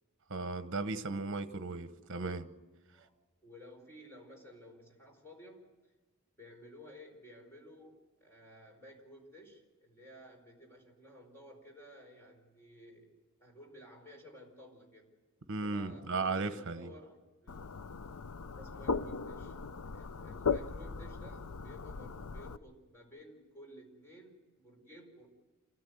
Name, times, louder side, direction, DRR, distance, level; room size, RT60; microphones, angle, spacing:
voice 1, 0.3-2.5 15.5-16.9, right 3 dB, 60° right, 1.1 m, -36 dB
voice 2, 3.4-5.9 6.4-15.1 15.6-17.7 18.6-19.6 19.9-25.3, equal, 10° left, 4.8 m, -54 dB
sound 1, 17.5-22.6, left 5 dB, 80° left, 0.6 m, -38 dB
28.5 x 14.0 x 7.9 m
head